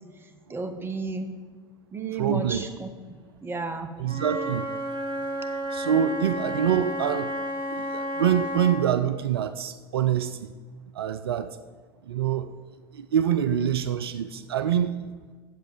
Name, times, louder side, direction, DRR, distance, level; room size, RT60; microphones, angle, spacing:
voice 1, 0.5-1.3 1.9-2.9 3.4-3.9, right 3 dB, 20° right, 7 dB, 1.0 m, -32 dB
voice 2, 2.1-2.6 4.0-4.7 5.7-7.3 7.7-10.5 11.0-11.5 12.1-12.5 12.9-14.9, right 9 dB, 75° right, 11 dB, 0.4 m, -25 dB
Wind instrument woodwind instrument, 4.0-8.8, equal, 40° right, 2.2 m, -31 dB
7.9 x 7.3 x 4.9 m, 1.5 s
figure-of-eight pair, 75°, 13 cm